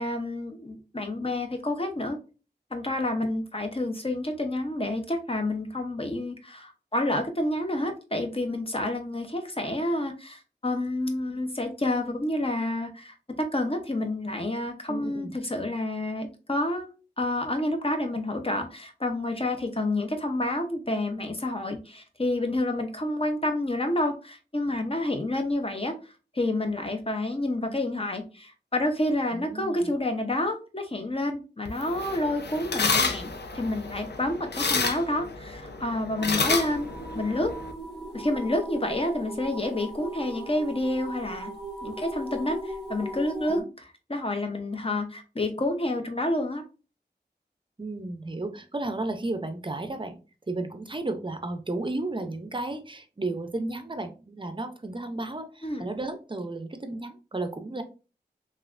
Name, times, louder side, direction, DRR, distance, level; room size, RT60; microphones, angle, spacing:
voice 1, 0.0-2.2 2.7-16.9 17.2-25.9 26.3-37.5 38.1-41.5 41.8-46.6 55.6-55.8, left 1 dB, 30° left, 5 dB, 0.7 m, -29 dB
voice 2, 14.9-15.3 29.3-29.9 36.2-36.5 43.5-43.7 47.8-50.2 50.5-57.8, right 2 dB, 30° right, 7 dB, 0.5 m, -33 dB
sound 1, 31.7-37.7, left 4 dB, 70° left, 0.5 m, -30 dB
sound 2, 36.2-43.6, right 1 dB, ahead, 1.3 m, -38 dB
3.1 x 2.4 x 2.4 m, 0.34 s
wide cardioid pair, 40°, 18 cm